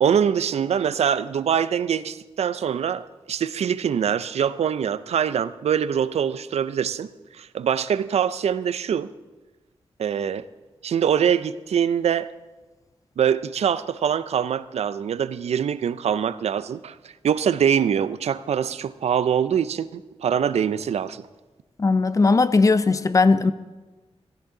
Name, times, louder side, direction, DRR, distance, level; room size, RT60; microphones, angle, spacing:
voice 1, 0.0-9.1 10.0-10.5 10.8-12.3 13.2-21.2, right 8 dB, 90° right, 0.5 m, -24 dB
voice 2, 21.8-23.5, left 3 dB, 30° left, 0.5 m, -18 dB
16.0 x 13.5 x 3.8 m
wide cardioid pair, 140°, 11 cm